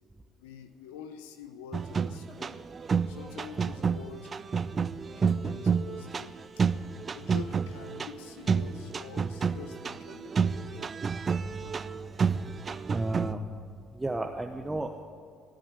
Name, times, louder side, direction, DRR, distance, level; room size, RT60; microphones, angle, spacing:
voice 1, 0.4-2.6 3.1-4.3 5.2-6.4 7.1-10.9, left 8 dB, 80° left, 9 dB, 0.8 m, -46 dB
sound 1, 1.7-13.3, right 5 dB, 35° right, 0.6 m, -30 dB
voice 2, 11.5-11.9 12.2-12.3 12.9-13.4 14.0-15.0, right 2 dB, 15° right, 4 dB, 1.0 m, -34 dB
18.0 x 8.9 x 8.2 m, 2.3 s
hypercardioid pair, 60°, 0 cm